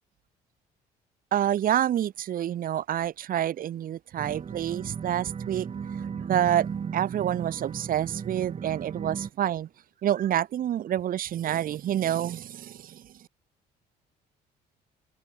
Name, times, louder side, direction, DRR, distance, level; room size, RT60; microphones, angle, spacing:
voice 1, 1.3-5.7 6.2-9.7 10.0-13.0, right 11 dB, 55° right, 2.0 m, -28 dB
sound 1, 4.2-9.3, right 6 dB, 35° right, 4.2 m, -36 dB
cardioid pair, 110°, 17 cm